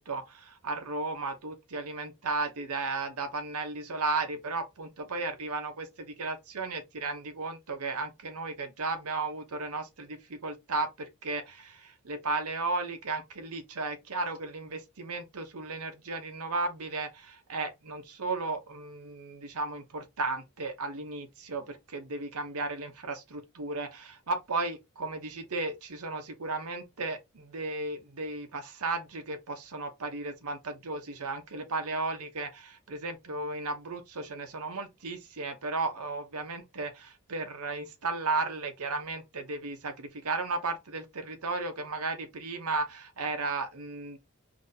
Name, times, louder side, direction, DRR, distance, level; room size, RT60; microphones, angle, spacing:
voice 1, 0.0-44.2, right 3 dB, 80° right, 0.9 m, -35 dB
4.0 x 2.8 x 2.6 m
head